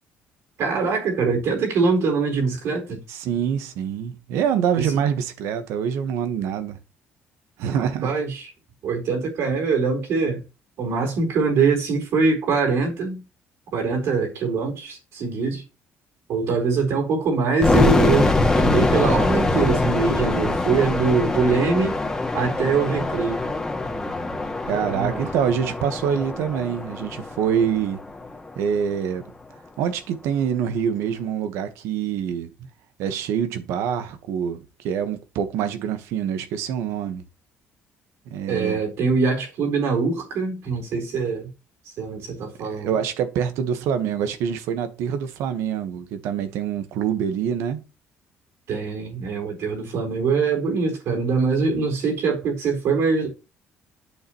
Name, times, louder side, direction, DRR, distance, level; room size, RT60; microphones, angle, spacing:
voice 1, 0.6-3.0 4.8-4.9 7.7-8.5 8.8-10.4 10.8-13.2 13.7-15.6 16.3-22.0 22.3-23.5 24.7-25.3 38.5-41.5 42.0-42.9 48.7-53.3, right 4 dB, 75° right, 4.2 m, -23 dB
voice 2, 3.1-6.8 7.6-8.1 24.7-28.0 28.6-29.3 29.8-32.5 33.0-37.2 38.3-38.8 42.7-47.8, right 8 dB, 90° right, 1.3 m, -25 dB
sound 1, 17.6-28.5, left 2 dB, 15° left, 1.8 m, -23 dB
8.6 x 6.8 x 3.1 m
cardioid pair, 105°, 5 cm